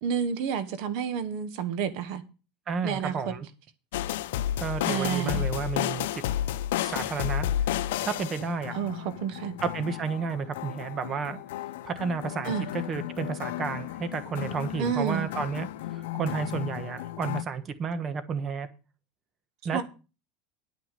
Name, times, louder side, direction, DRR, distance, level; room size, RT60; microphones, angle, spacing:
voice 1, 0.0-2.2 2.8-3.3 4.1-4.2 4.8-5.4 8.7-9.5 12.4-12.7 14.8-15.3 19.7-19.8, right 7 dB, 60° right, 1.2 m, -30 dB
voice 2, 2.7-3.5 4.6-6.2 6.8-7.5 8.0-8.7 9.6-11.4 11.8-18.7 19.6-19.8, right 5 dB, 30° right, 1.2 m, -32 dB
sound 1, 3.9-17.4, left 12 dB, 85° left, 0.6 m, -32 dB
11.0 x 6.1 x 6.6 m
supercardioid pair, 140°, 0 cm